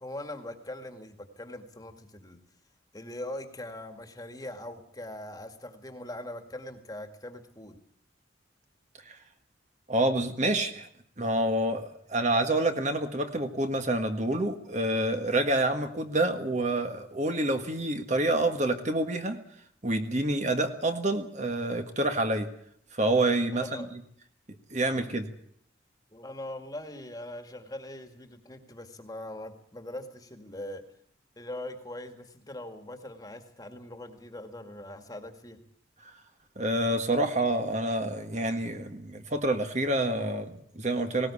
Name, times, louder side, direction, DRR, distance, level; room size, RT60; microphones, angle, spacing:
voice 1, 0.0-2.4 2.9-7.8 23.5-23.9 24.8-25.1 26.1-30.9 31.4-35.6, left 1 dB, 20° left, 6 dB, 2.0 m, -41 dB
voice 2, 9.9-10.9 11.2-19.4 19.8-22.5 22.9-23.8 24.7-25.3 36.5-41.3, right 1 dB, 40° right, 6 dB, 1.7 m, -27 dB
19.0 x 18.5 x 8.5 m, 0.63 s
head